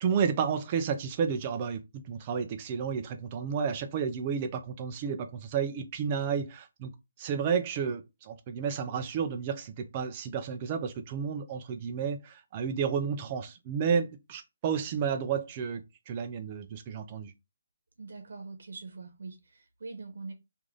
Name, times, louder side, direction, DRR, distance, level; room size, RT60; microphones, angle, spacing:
voice 1, 0.0-6.9 7.2-17.3, right 6 dB, 20° right, 0.4 m, -31 dB
voice 2, 18.0-20.3, right 3 dB, 60° right, 0.9 m, -43 dB
3.1 x 2.5 x 3.8 m
hypercardioid pair, 175°, 0 cm